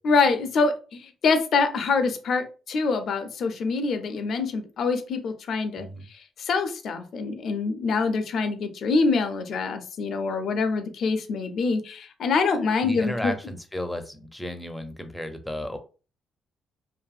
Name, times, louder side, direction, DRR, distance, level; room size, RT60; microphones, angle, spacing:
voice 1, 0.0-5.9 6.4-13.3, left 4 dB, 60° left, 8 dB, 0.4 m, -25 dB
voice 2, 12.8-15.8, left 1 dB, 5° left, 7 dB, 0.5 m, -33 dB
2.6 x 2.5 x 2.3 m, 0.35 s
cardioid pair, 90°, 0 cm